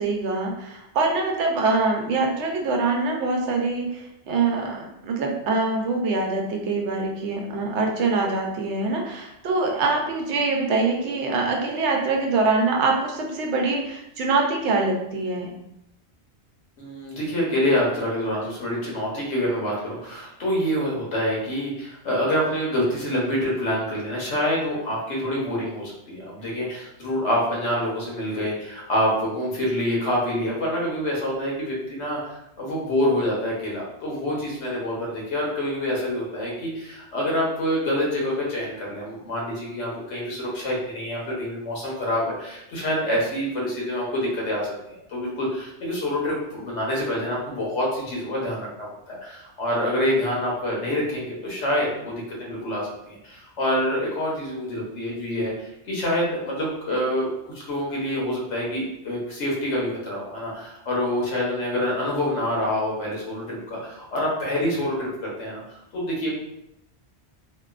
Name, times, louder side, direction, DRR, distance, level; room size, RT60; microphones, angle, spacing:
voice 1, 0.0-15.6, right 3 dB, 85° right, 1 dB, 0.9 m, -24 dB
voice 2, 16.8-65.1 65.4-66.3, left 1 dB, 90° left, -4 dB, 1.2 m, -26 dB
2.9 x 2.2 x 2.3 m, 0.84 s
omnidirectional pair, 1.1 m